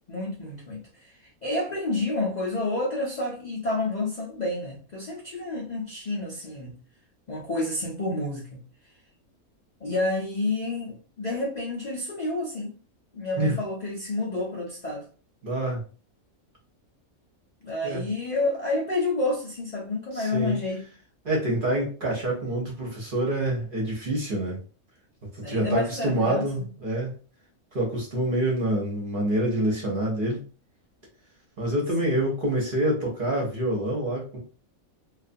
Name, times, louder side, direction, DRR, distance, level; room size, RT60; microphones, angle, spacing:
voice 1, 0.1-6.8 7.3-8.6 9.8-12.8 13.1-15.0 17.6-20.8 25.4-26.7 32.0-32.2, left 2 dB, 60° left, 0.4 m, -29 dB
voice 2, 15.4-15.8 17.8-18.0 20.1-20.6 21.2-24.6 25.3-27.2 27.7-30.4 31.6-34.4, right 1 dB, 45° right, 0.8 m, -26 dB
2.4 x 2.3 x 2.5 m
omnidirectional pair, 1.5 m